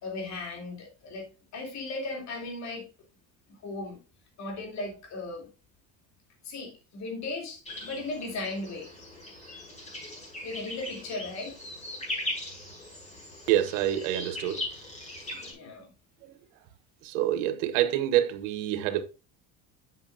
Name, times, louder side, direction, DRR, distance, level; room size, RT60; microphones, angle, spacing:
voice 1, 0.0-1.3 1.5-2.9 3.5-4.0 4.4-5.5 6.4-8.9 10.4-11.5 15.3-15.9, left 2 dB, 50° left, 3.1 m, -37 dB
sound 1, 7.7-15.5, left 2 dB, 20° left, 4.4 m, -39 dB
voice 2, 13.5-14.6 16.2-16.3 17.0-19.0, right 12 dB, 90° right, 1.0 m, -27 dB
7.9 x 7.0 x 2.6 m
cardioid pair, 125°, 36 cm